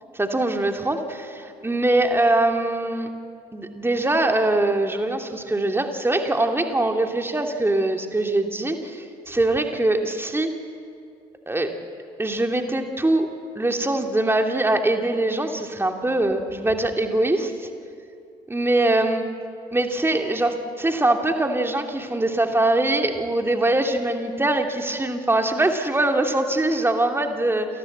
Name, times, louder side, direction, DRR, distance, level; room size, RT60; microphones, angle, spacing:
voice 1, 0.1-3.1 3.5-10.5 11.5-11.7 12.2-13.3 13.6-17.7 18.5-19.2 19.7-27.7, right 2 dB, 10° right, 4 dB, 2.6 m, -22 dB
28.5 x 19.5 x 8.0 m, 2.4 s
figure-of-eight pair, 55°, 21 cm